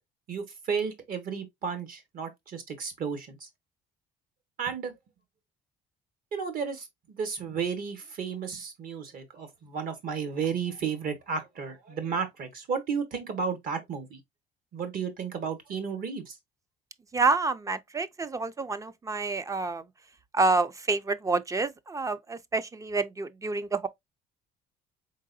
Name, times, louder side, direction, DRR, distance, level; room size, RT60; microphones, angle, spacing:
voice 1, 0.3-3.5 4.6-4.9 6.3-14.2 14.7-16.4, right 6 dB, 55° right, 1.3 m, -33 dB
voice 2, 17.1-19.8 20.3-23.9, right 3 dB, 20° right, 0.4 m, -28 dB
3.9 x 3.8 x 2.5 m
cardioid pair, 110°, 17 cm